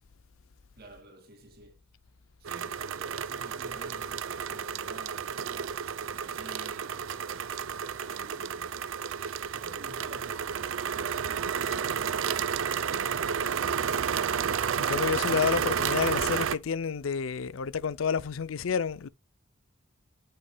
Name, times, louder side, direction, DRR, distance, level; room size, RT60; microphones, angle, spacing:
voice 1, 0.8-1.8 2.4-8.9 9.5-10.7, right 1 dB, 50° right, 2.1 m, -51 dB
sound 1, 2.4-16.5, right 7 dB, 75° right, 0.5 m, -31 dB
voice 2, 14.8-19.1, left 6 dB, 90° left, 0.5 m, -29 dB
8.6 x 6.9 x 2.3 m
head